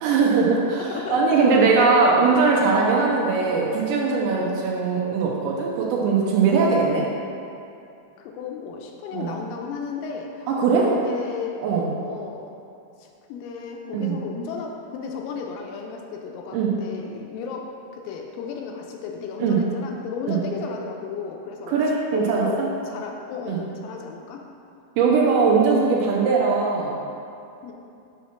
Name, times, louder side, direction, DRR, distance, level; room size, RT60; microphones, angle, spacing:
voice 1, 0.0-7.1 9.1-9.3 10.6-10.9 11.6-11.9 13.9-14.2 16.5-16.7 19.4-19.6 20.3-20.4 21.7-22.7 23.5-23.6 25.0-27.0, right 4 dB, 80° right, -2 dB, 2.1 m, -20 dB
voice 2, 0.7-1.8 4.3-4.6 8.2-10.5 10.9-11.7 12.0-12.6 13.0-21.8 22.1-24.4 27.6-27.7, left 5 dB, 80° left, 1 dB, 2.1 m, -34 dB
7.2 x 2.9 x 5.8 m, 2.7 s
omnidirectional pair, 4.2 m